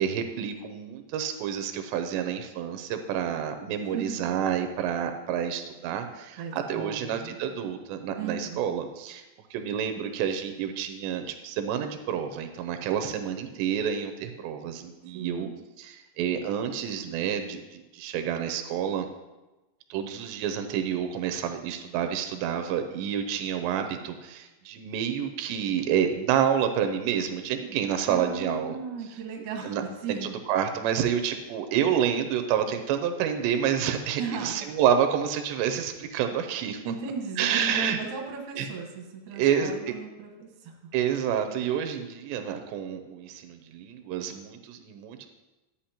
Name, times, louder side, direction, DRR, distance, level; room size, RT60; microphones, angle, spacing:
voice 1, 0.0-9.2 9.5-15.5 15.8-19.1 19.9-28.8 29.6-29.8 30.1-36.8 37.4-38.0 38.6-38.7 39.3-39.9 40.9-45.3, right 8 dB, 90° right, 6 dB, 2.9 m, -28 dB
voice 2, 3.7-4.2 6.4-7.3 8.2-8.7 15.1-15.6 28.0-30.3 34.2-34.7 36.8-40.9, right 5 dB, 65° right, 1 dB, 2.6 m, -37 dB
11.5 x 8.2 x 2.9 m, 1.1 s
omnidirectional pair, 4.9 m